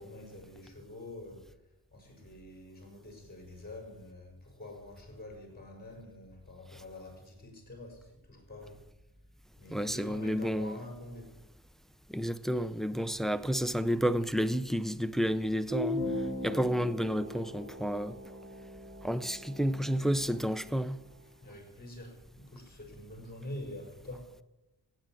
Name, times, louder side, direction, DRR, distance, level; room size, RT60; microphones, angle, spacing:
voice 1, 0.0-1.5 1.9-8.9 9.6-11.3 21.4-24.3, left 1 dB, 25° left, 4.9 m, -46 dB
voice 2, 9.7-10.8 12.1-16.0 16.4-18.2 19.0-21.0, equal, ahead, 0.5 m, -30 dB
sound 1, 15.7-21.0, left 1 dB, 30° right, 4.0 m, -39 dB
15.5 x 9.0 x 7.6 m
wide cardioid pair, 115°, 38 cm